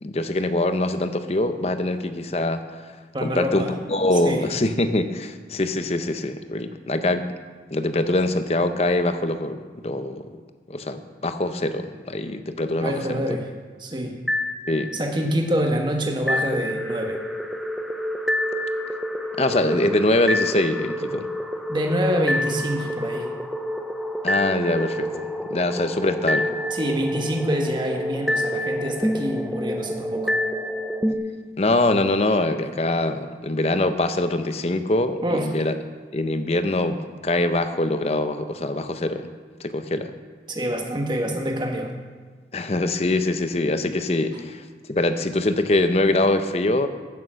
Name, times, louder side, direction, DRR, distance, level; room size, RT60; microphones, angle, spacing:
voice 1, 0.0-2.8 3.2-7.3 7.7-10.3 10.7-13.2 14.7-14.9 19.4-21.3 24.2-26.5 31.6-35.8 36.1-39.3 39.6-40.1 42.5-44.6 44.9-46.9, left 2 dB, 35° left, 9 dB, 0.7 m, -23 dB
voice 2, 3.1-3.7 4.2-4.5 12.8-13.4 13.8-14.2 14.9-17.2 21.7-23.3 26.7-30.4 35.2-35.5 40.5-41.9, equal, 25° right, 2 dB, 1.3 m, -26 dB
sound 1, 14.3-15.2 16.3-31.1, equal, ahead, 0.6 m, -27 dB
15.5 x 6.8 x 6.3 m, 1.5 s
head